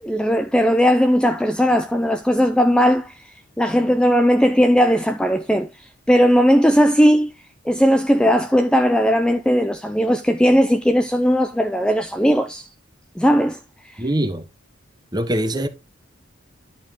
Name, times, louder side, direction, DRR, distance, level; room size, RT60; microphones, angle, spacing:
voice 1, 0.0-7.3 7.6-12.7 13.2-14.0, equal, 5° left, 0.4 m, -18 dB
voice 2, 14.0-14.5 15.1-15.7, right 1 dB, 20° right, 0.9 m, -22 dB
11.0 x 4.7 x 3.6 m
head